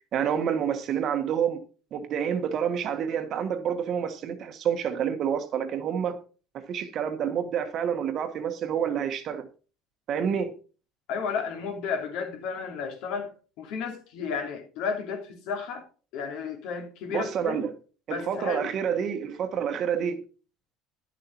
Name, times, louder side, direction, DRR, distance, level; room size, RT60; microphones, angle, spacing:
voice 1, 0.1-1.6 1.9-6.2 6.5-9.5 10.1-10.5 17.1-17.7 18.1-20.2, right 8 dB, 40° right, 1.3 m, -28 dB
voice 2, 11.1-13.3 13.6-15.8 16.1-17.6 18.1-18.7, left 6 dB, 65° left, 2.7 m, -32 dB
11.0 x 6.9 x 4.5 m
cardioid pair, 160°, 0 cm